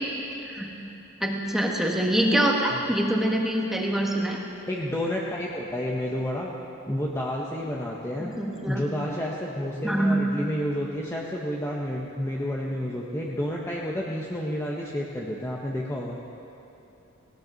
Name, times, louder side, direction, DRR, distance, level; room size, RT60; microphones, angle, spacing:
voice 1, 1.2-4.4 8.2-8.8 9.8-10.2, right 1 dB, ahead, -1 dB, 1.6 m, -25 dB
voice 2, 4.7-6.5 6.9-8.4 8.7-16.2, equal, 15° left, -3 dB, 1.0 m, -30 dB
18.5 x 17.5 x 4.0 m, 3.0 s
head